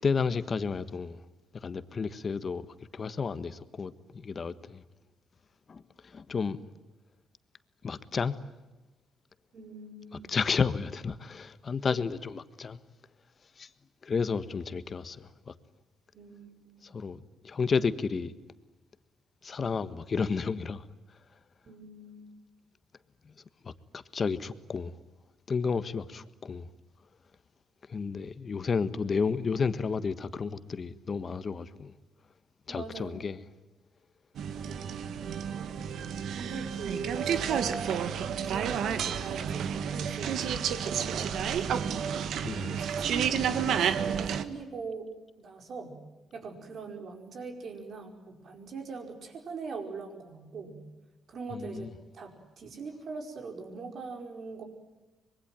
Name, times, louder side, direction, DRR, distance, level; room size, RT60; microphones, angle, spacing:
voice 1, 0.0-1.2 1.5-2.6 2.9-4.8 5.7-6.6 7.8-8.4 10.3-12.8 13.6-13.7 14.0-15.5 16.8-18.3 19.4-20.8 23.2-23.3 23.6-24.9 25.5-26.7 27.9-31.9 32.7-33.4 42.4-42.8 51.5-51.9, left 5 dB, 40° left, 1.4 m, -32 dB
voice 2, 9.5-10.3 16.1-17.0 21.6-22.4 32.7-33.3 34.5-35.2 36.3-38.1 38.4-42.2 42.8-45.1 45.4-46.0 46.3-50.8 51.3-54.6, right 4 dB, 60° right, 5.0 m, -42 dB
sound 1, 34.4-44.4, right 8 dB, 75° right, 1.5 m, -31 dB
25.0 x 22.0 x 9.1 m
cardioid pair, 90°, 0 cm